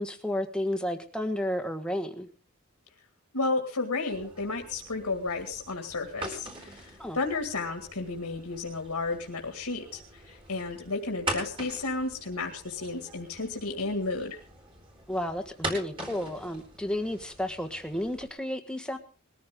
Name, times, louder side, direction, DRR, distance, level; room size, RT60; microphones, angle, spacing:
voice 1, 0.0-2.3 7.0-7.2 15.1-19.0, left 1 dB, 5° left, 6 dB, 1.4 m, -32 dB
voice 2, 3.3-14.4, left 3 dB, 85° left, 3 dB, 2.1 m, -32 dB
sound 1, 4.1-18.3, right 1 dB, 25° right, 3.9 m, -42 dB
21.0 x 14.0 x 3.7 m, 0.36 s
head